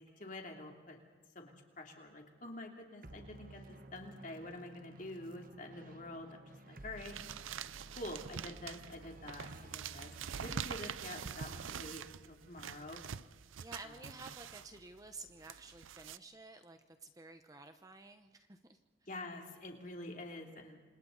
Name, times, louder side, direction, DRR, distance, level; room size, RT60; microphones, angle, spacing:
voice 1, 0.2-1.0 1.3-7.2 7.9-13.0 13.8-14.1 19.1-20.8, left 1 dB, 40° left, 2 dB, 3.0 m, -47 dB
sound 1, 3.0-13.8, right 1 dB, 45° right, 1.1 m, -55 dB
sound 2, 7.0-16.2, right 7 dB, 80° right, 0.6 m, -45 dB
voice 2, 13.6-18.8, right 3 dB, 15° right, 7 dB, 0.8 m, -52 dB
29.0 x 26.5 x 4.0 m, 1.3 s
head